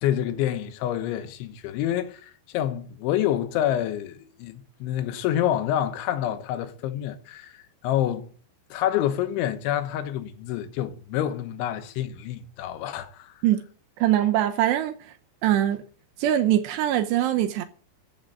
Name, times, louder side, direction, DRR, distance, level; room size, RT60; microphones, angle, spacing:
voice 1, 0.0-8.3 8.7-13.4, left 11 dB, 85° left, 3.4 m, -27 dB
voice 2, 14.0-15.1 15.4-15.8 16.2-17.6, right 12 dB, 80° right, 2.8 m, -22 dB
13.5 x 6.5 x 8.8 m
omnidirectional pair, 5.4 m